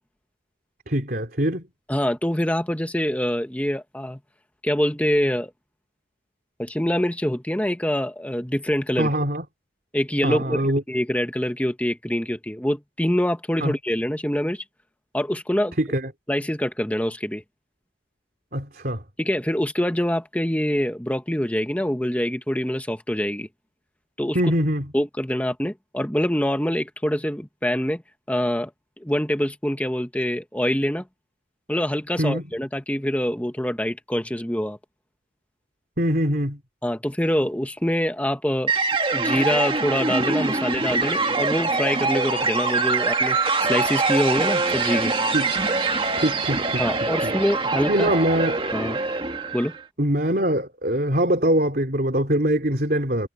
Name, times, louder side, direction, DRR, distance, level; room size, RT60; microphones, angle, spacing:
voice 1, 0.9-1.7 9.0-9.4 10.2-10.8 13.6-13.7 15.8-16.1 18.5-19.0 24.3-24.8 32.2-32.4 36.0-36.6 45.3-45.5 46.2-46.8 47.2-47.3 47.9-48.6 50.0-53.3, right 1 dB, 50° right, 3.3 m, -23 dB
voice 2, 1.9-4.2 4.6-5.5 6.6-9.1 9.9-10.6 10.9-14.6 15.1-15.7 16.3-17.4 19.2-23.5 24.2-24.4 24.9-28.0 28.3-28.7 29.0-31.0 31.7-34.8 36.8-38.7 39.1-45.1 46.8-48.2 48.7-49.0 49.5-49.7, equal, 10° left, 1.4 m, -25 dB
sound 1, 38.7-49.8, right 3 dB, 30° right, 1.9 m, -24 dB
head